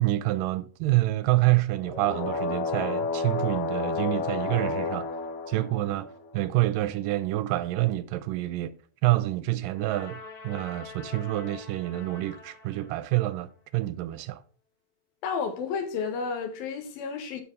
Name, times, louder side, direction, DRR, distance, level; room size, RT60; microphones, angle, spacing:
voice 1, 0.0-5.1 5.5-6.1 6.3-8.7 9.0-14.4, right 17 dB, 80° right, 2.2 m, -27 dB
sound 1, 1.8-6.4 9.8-12.6, left 4 dB, 60° left, 2.5 m, -33 dB
voice 2, 15.2-17.4, left 5 dB, 90° left, 3.4 m, -31 dB
13.0 x 6.1 x 3.7 m
omnidirectional pair, 4.1 m